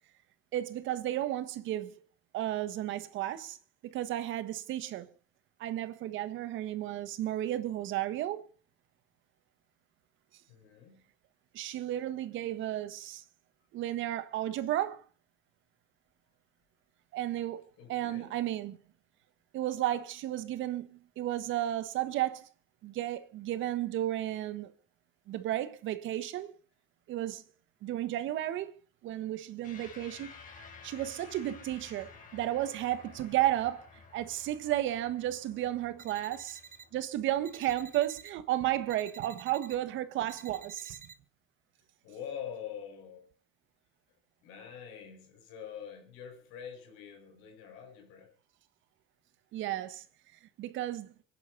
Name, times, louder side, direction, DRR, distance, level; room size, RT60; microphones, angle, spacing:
voice 1, 0.5-2.0 2.3-3.6 3.8-5.1 5.6-8.4 11.5-13.2 13.7-15.0 17.1-17.6 17.9-18.8 19.5-22.5 22.8-24.7 25.3-26.5 27.1-27.4 27.8-28.7 29.0-30.3 30.8-36.6 36.9-41.0 49.5-50.0 50.6-51.1, right 13 dB, 70° right, 1.5 m, -33 dB
voice 2, 10.5-11.0 17.8-18.4 36.3-36.6 42.0-43.3 44.4-48.3, left 8 dB, 85° left, 5.3 m, -45 dB
sound 1, 29.6-38.3, left 5 dB, 40° left, 4.6 m, -53 dB
sound 2, 36.0-36.9 37.4-38.3 38.9-39.8 40.3-41.1, right 6 dB, 40° right, 1.4 m, -51 dB
26.0 x 10.5 x 4.1 m
cardioid pair, 100°, 20 cm